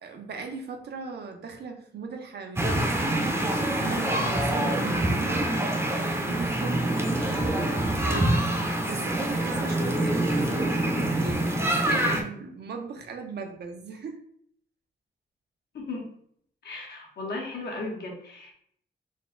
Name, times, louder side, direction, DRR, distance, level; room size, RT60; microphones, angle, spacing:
voice 1, 0.0-14.2, right 4 dB, 70° right, 4 dB, 0.7 m, -38 dB
sound 1, 2.6-12.2, right 1 dB, 15° right, 0.6 m, -25 dB
voice 2, 15.7-16.1 16.6-18.5, left 2 dB, 75° left, 0 dB, 1.1 m, -36 dB
4.1 x 2.2 x 3.7 m, 0.67 s
wide cardioid pair, 120°, 18 cm